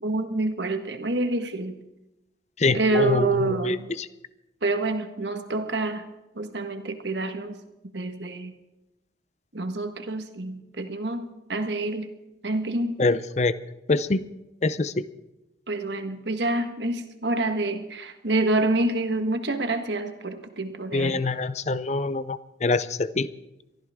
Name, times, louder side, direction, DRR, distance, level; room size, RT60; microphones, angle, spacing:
voice 1, 0.0-1.8 2.7-3.9 4.6-6.1 6.3-7.6 7.9-8.5 9.5-12.1 12.4-13.0 15.7-21.2, right 2 dB, 70° right, 7 dB, 1.5 m, -27 dB
voice 2, 2.6-4.1 13.0-13.5 13.9-14.3 14.6-15.0 20.9-23.3, left 3 dB, 35° left, 15 dB, 0.6 m, -25 dB
23.5 x 14.5 x 3.7 m, 0.95 s
head